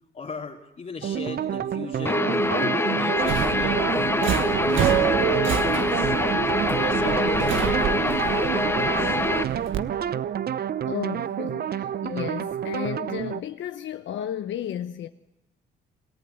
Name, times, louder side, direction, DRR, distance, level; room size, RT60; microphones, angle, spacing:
voice 1, 0.1-6.1 6.7-9.2, left 4 dB, 40° left, 2.5 m, -38 dB
sound 1, 1.0-13.4, right 9 dB, 50° right, 0.7 m, -29 dB
Guitar, 2.0-9.4, left 2 dB, 10° left, 1.1 m, -25 dB
Subway metro underground, 3.2-9.8, right 10 dB, 80° right, 1.3 m, -28 dB
voice 2, 10.9-15.1, left 10 dB, 70° left, 1.0 m, -33 dB
27.5 x 15.0 x 8.1 m
cardioid pair, 90°, 20 cm